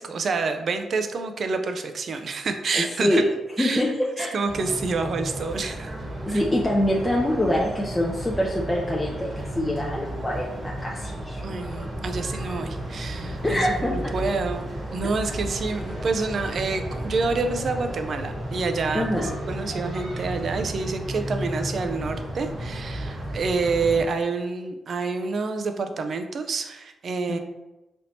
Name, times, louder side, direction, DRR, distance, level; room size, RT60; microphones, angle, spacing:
voice 1, 0.0-3.2 3.6-3.8 4.3-5.9 6.3-6.4 11.4-14.6 14.9-19.1 19.5-27.4, right 4 dB, 55° right, 7 dB, 0.4 m, -28 dB
voice 2, 2.7-3.3 3.6-3.9 4.2-4.3 6.3-11.4 13.4-14.1 18.9-19.3 27.3-27.4, left 1 dB, 15° left, -3 dB, 0.5 m, -25 dB
sound 1, 4.5-24.0, right 1 dB, 30° right, 1.2 m, -33 dB
3.4 x 2.8 x 2.6 m, 1.0 s
cardioid pair, 70°, 0 cm